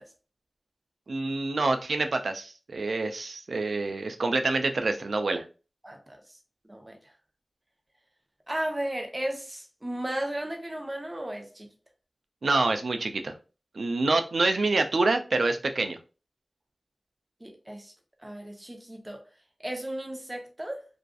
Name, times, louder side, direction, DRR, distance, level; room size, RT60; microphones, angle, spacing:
voice 1, 1.1-5.4 12.4-13.3 13.8-16.0, right 3 dB, 90° right, 0.3 m, -26 dB
voice 2, 5.8-6.2 6.7-6.9 8.5-11.7 17.4-17.9 18.2-19.2 19.6-20.9, right 1 dB, 25° right, 0.7 m, -34 dB
2.4 x 2.4 x 2.3 m
wide cardioid pair, 45°, 0 cm